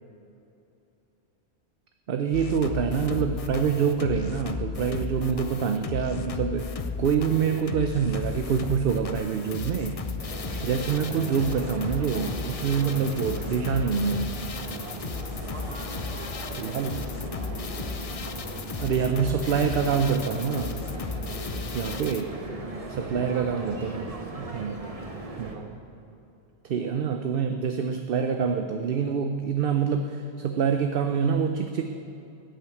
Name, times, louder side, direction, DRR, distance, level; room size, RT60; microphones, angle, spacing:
voice 1, 2.1-10.0 10.6-14.3 16.6-16.9 18.8-20.8 21.7-22.3 22.9-24.7 25.4-25.7 26.6-31.8, right 6 dB, 65° right, 6 dB, 0.8 m, -26 dB
sound 1, 2.3-22.2, left 5 dB, 40° left, 0.6 m, -35 dB
sound 2, 10.2-25.6, right 2 dB, 35° right, 1.3 m, -38 dB
voice 2, 15.7-17.1 23.0-25.2, right 2 dB, 90° right, 0 dB, 2.3 m, -45 dB
11.5 x 8.9 x 8.3 m, 2.8 s
omnidirectional pair, 1.1 m